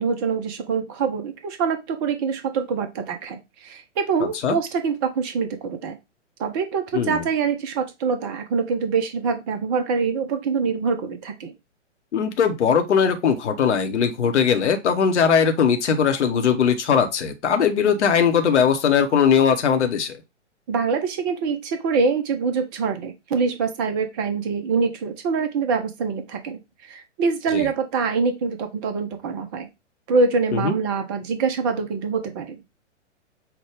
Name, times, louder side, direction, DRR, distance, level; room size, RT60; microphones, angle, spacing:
voice 1, 0.0-6.0 6.4-11.5 20.7-29.7 30.1-32.6, right 5 dB, 20° right, 7 dB, 0.4 m, -25 dB
voice 2, 6.9-7.2 12.1-20.1 27.5-27.7 30.5-30.7, left 7 dB, 70° left, 7 dB, 0.8 m, -20 dB
5.8 x 2.1 x 3.3 m, 0.23 s
figure-of-eight pair, 115°, 37 cm